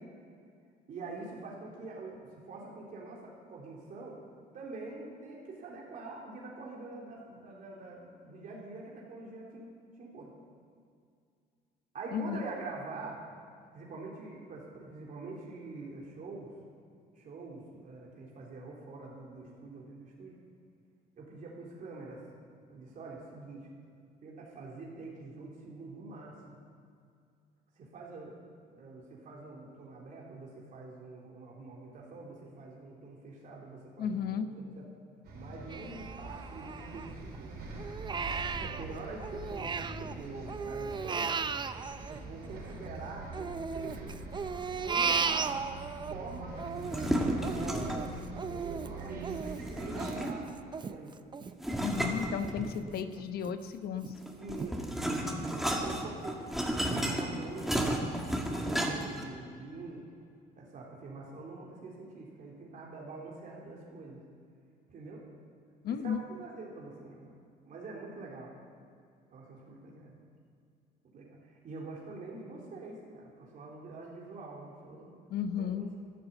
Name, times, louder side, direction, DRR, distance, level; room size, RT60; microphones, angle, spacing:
voice 1, 0.9-4.2 4.5-9.7 10.0-10.3 11.9-13.2 13.7-16.5 17.1-20.4 21.2-22.2 22.7-23.7 24.2-26.6 27.8-28.4 28.7-34.8 35.3-37.6 38.6-41.3 42.1-44.2 44.8-45.7 46.1-46.5 47.0-51.1 52.5-52.8 54.3-54.8 55.5-56.4 56.7-58.0 58.6-60.1 60.5-64.2 64.9-65.2 65.9-67.3 67.6-68.9 69.3-70.2 71.1-75.1 75.6-76.0, right 3 dB, 50° right, -3 dB, 3.4 m, -45 dB
voice 2, 12.1-12.4 34.0-34.5 51.8-54.1 65.8-66.2 75.3-75.9, left 7 dB, 65° left, 10 dB, 1.0 m, -34 dB
Bus, 35.2-50.1, right 2 dB, 70° right, 4.7 m, -44 dB
Crying sobbing, 35.7-37.4 37.8-40.1 40.5-42.9 43.3-46.1 46.5-52.0 52.4-52.5 53.0-53.5 54.0-54.1 54.6-54.7, right 5 dB, 25° right, 0.6 m, -36 dB
sound 1, 46.8-48.2 49.6-50.6 51.6-53.0 54.2-59.2, right 1 dB, ahead, 2.0 m, -33 dB
13.0 x 11.5 x 8.2 m, 2.3 s
cardioid pair, 110°, 17 cm